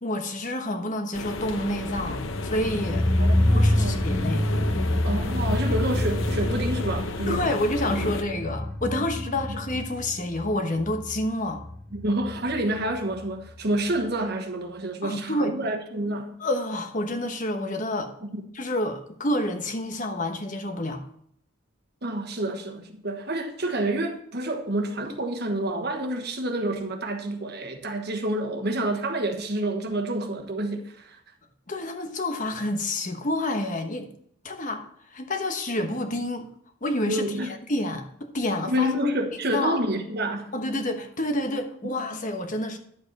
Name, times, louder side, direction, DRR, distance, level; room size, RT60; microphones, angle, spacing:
voice 1, 0.0-3.1 3.5-4.5 7.3-11.6 15.0-15.5 16.4-18.1 18.5-21.0 31.7-34.1 34.4-34.8 35.1-36.5 36.8-38.9 39.5-39.8 40.5-42.8, left 1 dB, 40° left, 1.1 m, -28 dB
sound 1, 1.1-8.2, left 2 dB, 70° left, 0.9 m, -33 dB
sound 2, 2.3-13.2 13.5-13.6, left 1 dB, 10° left, 1.0 m, -27 dB
voice 2, 3.2-4.0 5.0-7.5 9.2-9.6 11.9-16.4 18.2-18.4 22.0-31.2 37.1-37.5 38.7-40.5, right 1 dB, 50° right, 1.2 m, -28 dB
11.0 x 7.7 x 4.1 m
head